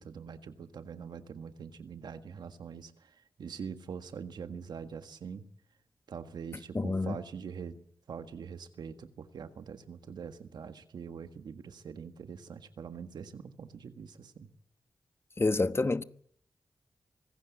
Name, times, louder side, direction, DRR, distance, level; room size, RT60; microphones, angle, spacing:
voice 1, 0.0-5.5 6.1-7.8 8.1-14.5, right 6 dB, 85° right, 1.7 m, -44 dB
voice 2, 6.7-7.1 15.4-16.0, left 3 dB, 35° left, 1.0 m, -28 dB
24.5 x 16.0 x 8.3 m
cardioid pair, 50°, 7 cm